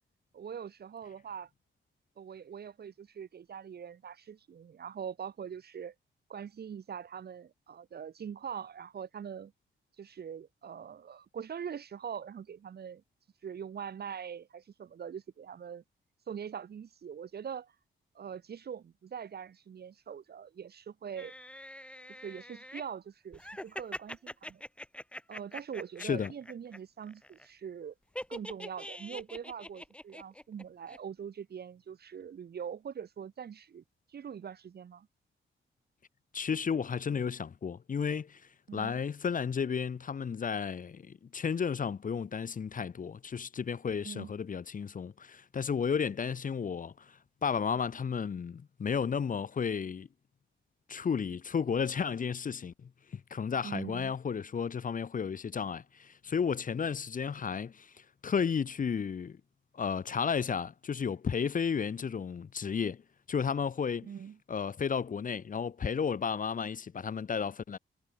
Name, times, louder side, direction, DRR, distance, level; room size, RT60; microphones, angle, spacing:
voice 1, 0.3-1.5 2.2-5.9 6.3-9.5 10.0-13.0 13.4-15.8 16.3-17.7 18.1-21.3 22.2-24.6 25.3-27.9 28.3-33.8 34.1-35.1 38.7-38.9 44.0-44.3 53.6-54.1 64.0-64.4, right 7 dB, 50° right, 1.0 m, -43 dB
sound 1, 21.2-22.8 23.3-26.8 27.0-27.4 28.1-30.6 30.9-31.0, left 1 dB, 5° left, 2.4 m, -44 dB
voice 2, 26.0-26.3 36.3-50.1 50.9-59.4 59.7-63.0 63.3-64.1 64.5-67.8, left 6 dB, 40° left, 1.0 m, -33 dB
wide cardioid pair, 120°, 21 cm